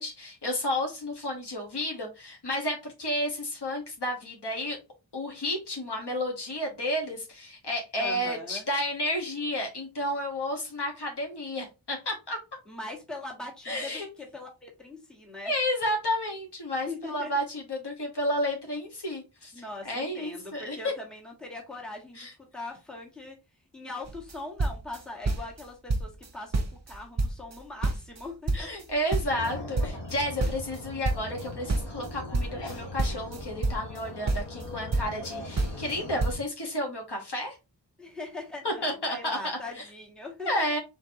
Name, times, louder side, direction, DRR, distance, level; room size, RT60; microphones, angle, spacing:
voice 1, 0.0-4.8 5.1-12.4 13.6-14.1 15.4-20.9 22.2-22.3 28.5-37.6 38.6-39.9 40.4-40.8, left 1 dB, 70° left, 1 dB, 1.3 m, -31 dB
voice 2, 8.0-8.7 12.7-15.5 16.9-17.3 19.5-22.3 22.5-23.4 23.7-28.7 30.4-30.5 38.0-40.6, left 2 dB, ahead, -1 dB, 1.3 m, -41 dB
sound 1, 24.1-24.3 24.6-25.6 25.9-26.3 26.5-28.2 28.5-31.4 31.7-34.0 34.3-35.3 35.6-36.0 36.2-36.4, right 2 dB, 40° right, 0.9 m, -28 dB
sound 2, 29.3-36.4, left 2 dB, 85° left, 1.4 m, -40 dB
4.4 x 3.9 x 2.7 m, 0.27 s
wide cardioid pair, 70°, 42 cm